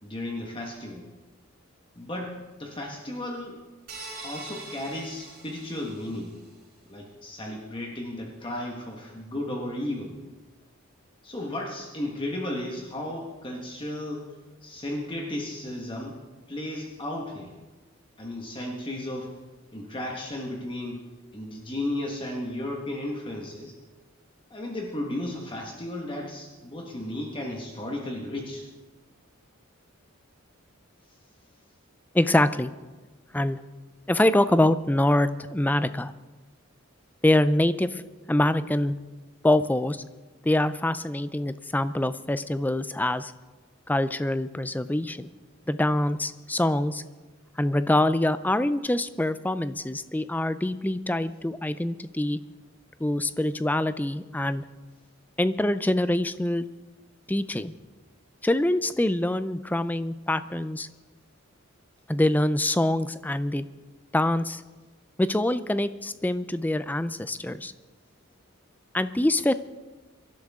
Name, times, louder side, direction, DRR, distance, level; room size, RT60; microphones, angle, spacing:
voice 1, 0.0-1.0 1.9-3.6 4.2-6.3 6.9-10.1 11.2-14.3 14.6-16.2 16.5-17.5 18.2-19.3 19.7-21.0 21.3-23.7 24.5-28.7, left 1 dB, 25° left, -1 dB, 1.5 m, -34 dB
sound 1, 3.9-6.4, right 3 dB, 50° right, 5.5 m, -43 dB
voice 2, 32.1-32.7 33.3-33.6 34.1-36.1 37.2-38.0 38.3-39.0 39.4-40.0 40.4-43.3 43.9-45.3 45.7-47.0 47.6-52.4 53.0-54.6 55.4-56.6 57.3-57.7 58.4-60.9 62.1-63.7 64.1-64.6 65.2-67.7 68.9-69.5, left 1 dB, 10° left, 13 dB, 0.4 m, -25 dB
24.5 x 11.5 x 3.7 m, 1.2 s
head